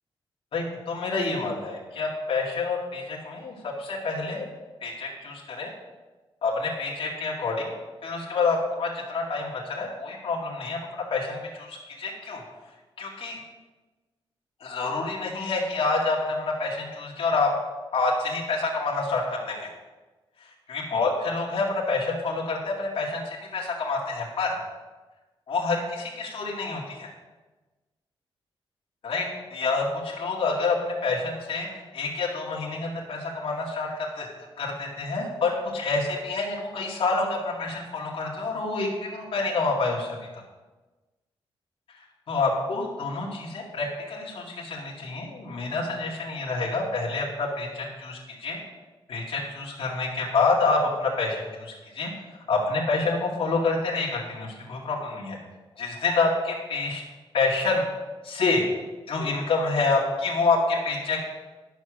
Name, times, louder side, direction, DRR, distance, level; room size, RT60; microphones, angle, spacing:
voice 1, 0.5-4.5 4.8-5.7 6.4-7.7 8.0-12.4 13.0-13.4 14.6-17.5 17.9-19.7 20.7-24.6 25.5-27.1 29.0-33.9 34.1-34.3 34.6-40.2 42.3-48.6 49.1-52.1 52.5-55.4 55.8-57.0 57.3-57.8 58.2-58.6 59.1-61.3, left 3 dB, 65° left, -4 dB, 2.1 m, -27 dB
11.5 x 6.4 x 6.2 m, 1.2 s
wide cardioid pair, 160°, 10 cm